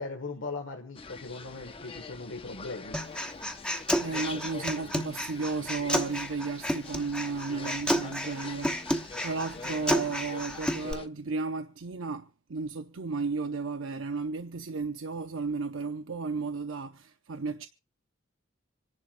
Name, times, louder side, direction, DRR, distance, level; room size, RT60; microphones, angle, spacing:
voice 1, 0.0-3.0, left 3 dB, 70° left, 1.6 m, -39 dB
sound 1, 0.9-11.1, left 4 dB, 30° left, 0.7 m, -44 dB
Human voice, 2.9-10.9, equal, 5° left, 1.1 m, -31 dB
voice 2, 4.0-17.7, right 4 dB, 80° right, 0.7 m, -34 dB
26.5 x 11.0 x 2.6 m
head